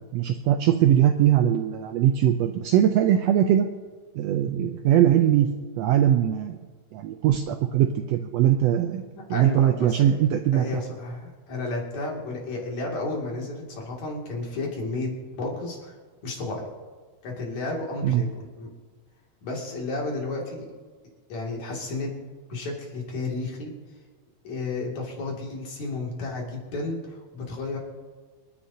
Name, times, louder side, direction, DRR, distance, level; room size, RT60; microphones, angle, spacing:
voice 1, 0.1-3.7 4.1-5.5 5.8-6.6 6.9-9.0 9.3-10.8 18.0-18.2, right 11 dB, 80° right, 6 dB, 1.5 m, -21 dB
voice 2, 9.3-10.2 10.5-15.9 16.2-16.6 17.2-18.7 19.4-20.7 21.3-22.1 22.5-23.7 24.4-27.8, left 2 dB, 65° left, -2 dB, 3.8 m, -32 dB
27.0 x 10.0 x 2.8 m, 1.4 s
omnidirectional pair, 3.5 m